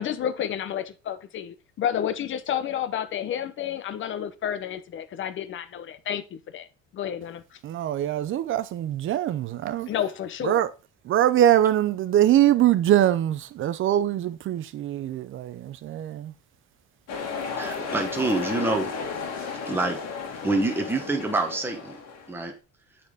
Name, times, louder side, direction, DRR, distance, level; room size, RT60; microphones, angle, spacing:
voice 1, 0.0-6.7 6.9-7.6 9.9-10.6, left 9 dB, 40° left, 0.7 m, -30 dB
voice 2, 7.6-9.9 10.4-10.7 11.0-16.3, right 12 dB, 40° right, 0.5 m, -23 dB
sound 1, 17.1-22.4, left 5 dB, 55° left, 2.0 m, -34 dB
voice 3, 17.6-18.9 19.7-20.0 20.4-22.0 22.3-22.5, right 2 dB, 5° right, 1.1 m, -26 dB
8.0 x 4.2 x 3.5 m
cardioid pair, 135°, 32 cm